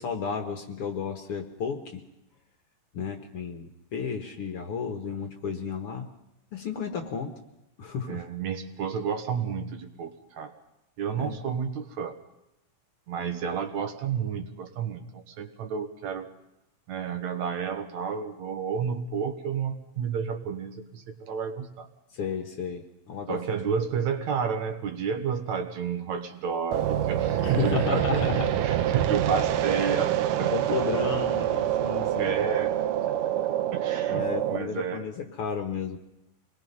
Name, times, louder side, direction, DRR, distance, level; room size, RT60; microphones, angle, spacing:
voice 1, 0.0-2.0 2.9-6.1 6.5-7.3 7.8-8.3 11.2-11.4 22.1-23.6 27.4-28.5 30.5-32.4 34.1-36.0, left 6 dB, 55° left, 5 dB, 1.8 m, -32 dB
voice 2, 8.1-10.5 11.0-12.2 13.1-16.3 16.9-21.9 23.3-28.2 28.6-30.8 32.2-32.7 33.7-35.1, right 6 dB, 65° right, 7 dB, 2.5 m, -31 dB
sound 1, 26.7-34.6, right 11 dB, 90° right, 2.5 m, -26 dB
26.0 x 20.0 x 5.5 m, 0.91 s
omnidirectional pair, 3.6 m